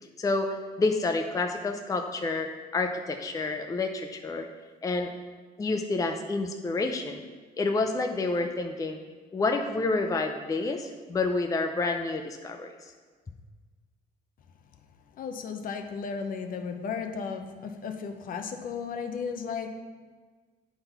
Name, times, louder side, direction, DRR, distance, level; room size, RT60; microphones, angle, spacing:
voice 1, 0.2-2.5 2.7-4.5 4.8-5.1 5.6-7.2 7.6-9.0 9.3-12.9, left 3 dB, 20° left, 4 dB, 0.5 m, -29 dB
voice 2, 15.2-19.7, left 5 dB, 55° left, 6 dB, 0.8 m, -34 dB
8.7 x 4.1 x 5.4 m, 1.5 s
cardioid pair, 110°, 17 cm